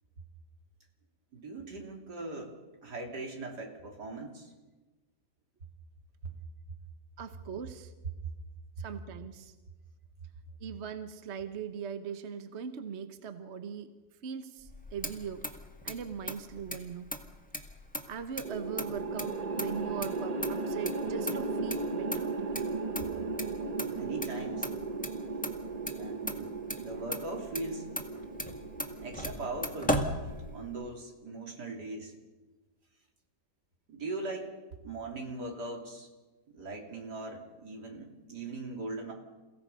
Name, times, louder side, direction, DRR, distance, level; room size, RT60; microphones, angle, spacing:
voice 1, 1.3-2.6 2.8-4.5 6.2-6.3 8.8-8.9 23.8-24.7 26.0-27.8 28.1-28.4 29.0-30.0 30.5-32.1 33.9-34.5 34.8-36.1 36.5-39.1, right 2 dB, 75° right, 1 dB, 3.7 m, -40 dB
voice 2, 7.2-7.9 8.8-9.5 10.6-13.9 14.2-15.5 15.8-17.1 18.1-22.3, right 7 dB, 45° right, 9 dB, 1.2 m, -40 dB
Motor vehicle (road), 14.6-30.9, equal, 5° left, 1.7 m, -39 dB
sound 1, 18.4-30.8, right 3 dB, 30° right, 0.9 m, -36 dB
29.0 x 16.5 x 5.6 m, 1.2 s
omnidirectional pair, 1.8 m